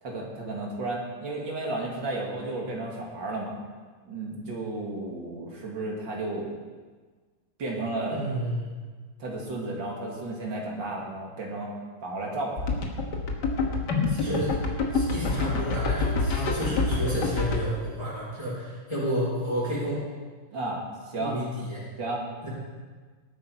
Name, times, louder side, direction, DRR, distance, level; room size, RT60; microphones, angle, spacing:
voice 1, 0.0-3.6 4.0-6.5 7.6-8.2 9.2-11.7 12.0-12.6 14.2-14.4 20.5-20.8 21.1-21.4 22.0-22.2, right 2 dB, 65° right, -1 dB, 2.9 m, -33 dB
voice 2, 8.1-8.7 14.1-14.5 14.9-20.0 21.2-21.9 22.4-22.5, equal, 15° left, -7 dB, 4.0 m, -31 dB
sound 1, 12.6-17.6, left 3 dB, 60° left, 2.0 m, -27 dB
18.5 x 8.5 x 4.6 m, 1.4 s
omnidirectional pair, 2.2 m